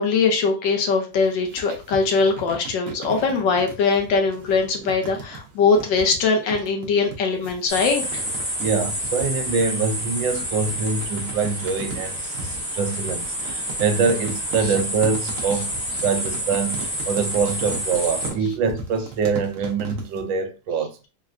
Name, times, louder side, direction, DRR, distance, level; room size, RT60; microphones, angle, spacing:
voice 1, 0.0-8.2, left 4 dB, 75° left, 1.4 m, -21 dB
sound 1, 1.1-20.2, right 4 dB, 60° right, 0.9 m, -38 dB
sound 2, 7.7-18.3, equal, 10° left, 0.7 m, -29 dB
voice 2, 8.6-15.7 16.0-21.0, right 5 dB, 80° right, 1.3 m, -24 dB
3.9 x 2.1 x 2.4 m
omnidirectional pair, 2.0 m